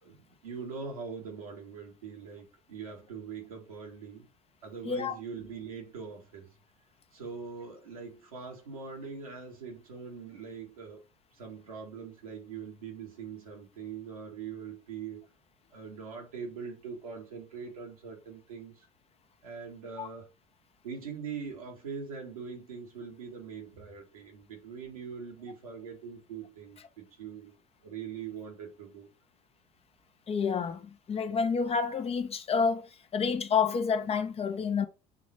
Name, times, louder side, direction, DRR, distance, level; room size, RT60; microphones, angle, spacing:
voice 1, 0.0-4.3 4.6-6.5 7.1-11.0 11.3-15.2 15.7-18.9 19.4-20.3 20.8-27.5 27.8-29.1, right 6 dB, 85° right, 2.0 m, -42 dB
voice 2, 30.3-34.9, left 5 dB, 35° left, 1.0 m, -29 dB
7.2 x 3.1 x 4.5 m
hypercardioid pair, 70°, 18 cm